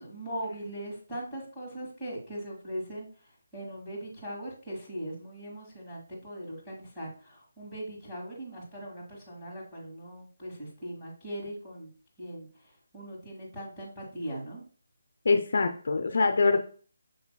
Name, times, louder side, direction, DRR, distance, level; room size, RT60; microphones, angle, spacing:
voice 1, 0.0-3.1 3.5-11.9 12.2-12.5 12.9-14.6, right 1 dB, 10° left, -8 dB, 2.1 m, -40 dB
voice 2, 15.3-16.6, left 4 dB, 60° left, 5 dB, 0.5 m, -24 dB
6.0 x 3.3 x 2.2 m, 0.41 s
figure-of-eight pair, 155°, 0 cm